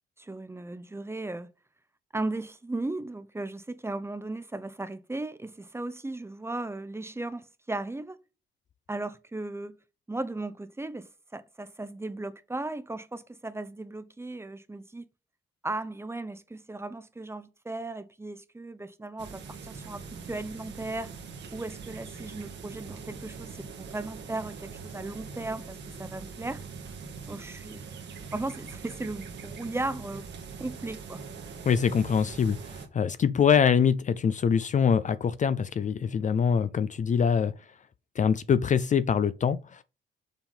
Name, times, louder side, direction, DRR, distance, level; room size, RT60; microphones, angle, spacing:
voice 1, 0.2-1.5 2.1-8.2 8.9-9.8 10.1-15.1 15.6-21.2 21.5-26.6 27.3-27.9 28.3-30.3 30.6-31.2, right 2 dB, 15° right, 0.7 m, -36 dB
sound 1, 19.2-32.9, right 5 dB, 65° right, 1.6 m, -42 dB
voice 2, 31.7-37.5 38.2-39.8, left 7 dB, 40° left, 0.5 m, -24 dB
7.3 x 3.7 x 5.4 m
cardioid pair, 90°, 20 cm